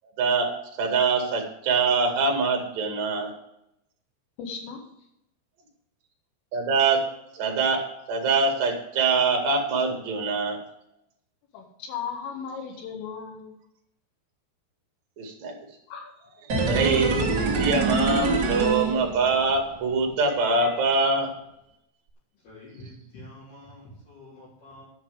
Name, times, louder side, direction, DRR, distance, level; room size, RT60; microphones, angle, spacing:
voice 1, 0.2-0.5 0.8-3.3 6.5-7.0 7.3-7.8 8.1-10.6 15.2-15.5 16.7-21.3, right 4 dB, 45° right, 2 dB, 2.9 m, -24 dB
voice 2, 4.4-4.8 11.5-13.5 15.9-16.1, left 6 dB, 75° left, 2 dB, 4.4 m, -36 dB
sound 1, 16.5-19.6 19.9-20.0, right 3 dB, 75° right, 1.0 m, -25 dB
voice 3, 22.4-24.9, left 1 dB, 50° left, -9 dB, 5.6 m, -47 dB
11.0 x 5.9 x 8.2 m, 0.80 s
omnidirectional pair, 5.9 m